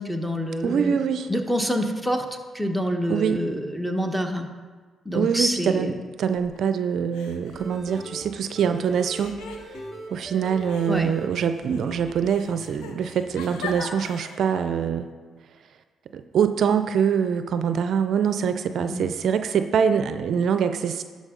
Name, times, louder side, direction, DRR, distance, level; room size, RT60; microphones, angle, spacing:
voice 1, 0.0-1.0 1.3-2.2 2.5-4.5 5.0-5.9 10.9-11.1 18.9-19.1, equal, ahead, 5 dB, 1.0 m, -26 dB
voice 2, 0.6-1.3 3.1-3.4 5.1-9.4 10.1-15.1 16.1-21.0, right 7 dB, 70° right, 9 dB, 0.4 m, -24 dB
sound 1, 6.2-6.8 7.1-8.5 9.1-10.2 10.7-14.7, left 5 dB, 85° left, 0.8 m, -41 dB
sound 2, 7.4-12.7 13.0-13.8, right 1 dB, 20° left, 2.0 m, -40 dB
11.5 x 5.2 x 3.7 m, 1.4 s
supercardioid pair, 60°, 0 cm